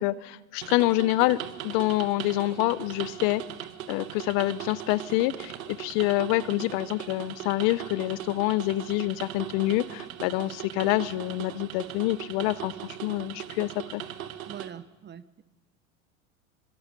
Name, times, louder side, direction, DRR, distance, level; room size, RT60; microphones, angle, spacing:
voice 1, 0.0-3.4 3.9-12.7 13.0-14.0, left 17 dB, 55° left, 17 dB, 0.9 m, -26 dB
sound 1, 0.6-14.7, right 11 dB, 80° right, 1.8 m, -39 dB
voice 2, 14.4-15.4, right 9 dB, 25° right, 15 dB, 1.1 m, -43 dB
25.5 x 23.5 x 5.3 m, 1.2 s
hypercardioid pair, 100°, 41 cm